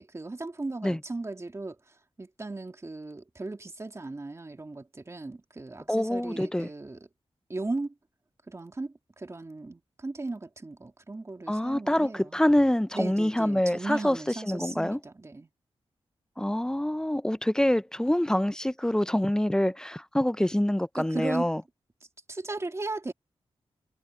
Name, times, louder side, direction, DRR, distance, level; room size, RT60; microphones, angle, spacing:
voice 1, 0.0-1.8 2.2-7.0 7.5-7.9 8.5-12.4 12.9-15.5 20.9-21.5 22.3-23.1, right 2 dB, 30° right, 2.4 m, -37 dB
voice 2, 5.9-6.7 11.5-15.0 16.4-21.6, left 1 dB, 5° left, 0.5 m, -26 dB
cardioid pair, 80°, 10 cm